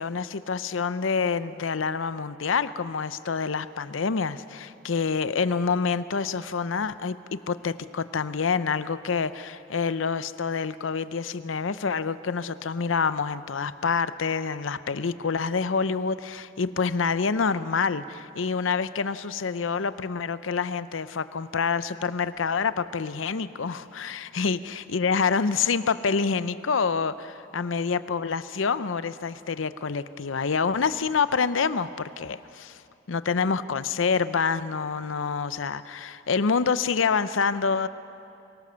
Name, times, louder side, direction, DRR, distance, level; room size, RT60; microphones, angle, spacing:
voice 1, 0.0-32.8 33.1-37.9, left 5 dB, 85° left, 14 dB, 0.6 m, -27 dB
24.0 x 17.5 x 6.9 m, 2.7 s
head